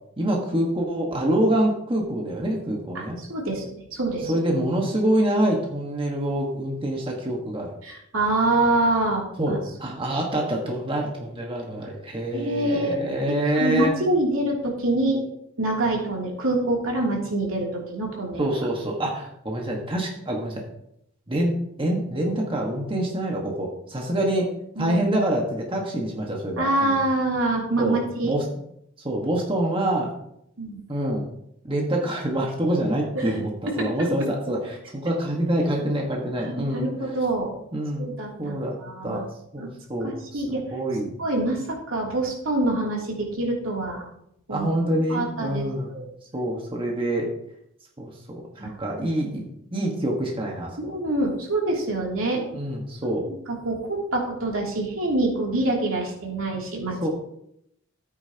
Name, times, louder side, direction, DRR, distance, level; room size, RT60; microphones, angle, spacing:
voice 1, 0.2-3.2 4.3-7.7 9.4-13.9 18.4-20.6 21.3-21.5 21.8-24.5 24.8-27.0 27.8-28.0 28.2-28.4 29.0-30.1 30.9-31.2 31.6-33.5 33.8-36.9 37.7-38.1 38.4-38.8 39.0-39.2 39.5-40.5 40.7-41.1 44.5-45.9 46.3-47.3 48.0-49.5 49.7-50.9 52.5-53.3 57.0-57.1, right 1 dB, 25° right, -1 dB, 1.5 m, -26 dB
voice 2, 2.9-4.3 7.8-9.6 12.3-15.2 15.6-18.4 24.8-25.0 26.6-28.3 30.6-30.8 33.1-33.2 33.8-33.9 36.6-37.5 38.0-39.2 39.6-39.7 40.0-40.6 41.2-44.0 44.5-44.7 45.1-46.0 48.6-48.7 50.8-52.4 53.0-57.1, right 2 dB, 80° right, -2 dB, 3.0 m, -26 dB
13.5 x 8.8 x 2.9 m, 0.76 s
head